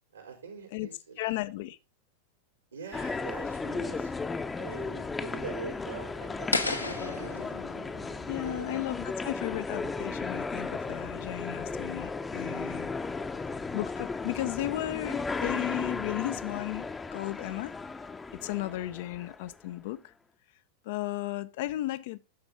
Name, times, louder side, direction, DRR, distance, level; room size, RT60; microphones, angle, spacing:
voice 1, 0.1-1.2 2.7-4.1 4.6-7.4 8.4-8.8, right 6 dB, 75° right, 3.5 m, -43 dB
voice 2, 1.2-1.8 8.3-12.9 13.7-17.7 18.4-20.0 20.8-22.2, left 16 dB, 50° left, 0.6 m, -34 dB
sound 1, 2.9-19.5, left 4 dB, 10° left, 0.8 m, -35 dB
sound 2, 6.5-9.5, left 3 dB, 85° left, 1.1 m, -34 dB
11.5 x 6.9 x 3.6 m
figure-of-eight pair, 90°, 0 cm